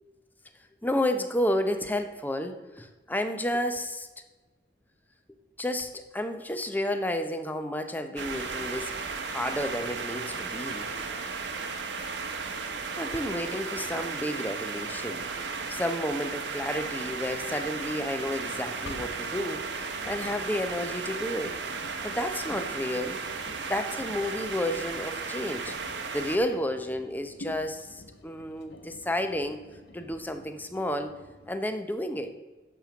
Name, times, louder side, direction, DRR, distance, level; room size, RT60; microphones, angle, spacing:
voice 1, 0.8-4.1 5.6-8.9 9.3-10.9 13.0-15.3 15.7-21.6 22.0-23.3 23.7-25.8 26.1-29.6 29.9-31.2 31.5-32.3, left 1 dB, 10° left, 8 dB, 0.7 m, -31 dB
sound 1, 8.2-26.4, right 4 dB, 85° right, 1.2 m, -35 dB
Engine, 17.3-31.5, left 1 dB, 75° left, 1.0 m, -49 dB
11.0 x 4.5 x 7.1 m, 1.2 s
head